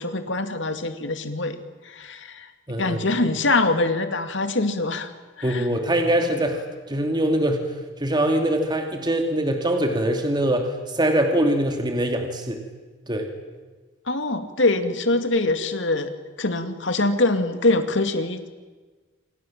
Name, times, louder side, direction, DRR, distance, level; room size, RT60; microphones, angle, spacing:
voice 1, 0.0-1.6 1.9-2.5 2.8-5.1 5.4-5.6 14.1-16.1 16.4-18.5, left 2 dB, 70° left, 8 dB, 2.5 m, -23 dB
voice 2, 2.7-3.0 5.4-12.6 13.1-13.3, right 1 dB, 25° right, 4 dB, 2.7 m, -23 dB
28.0 x 26.5 x 7.5 m, 1.3 s
head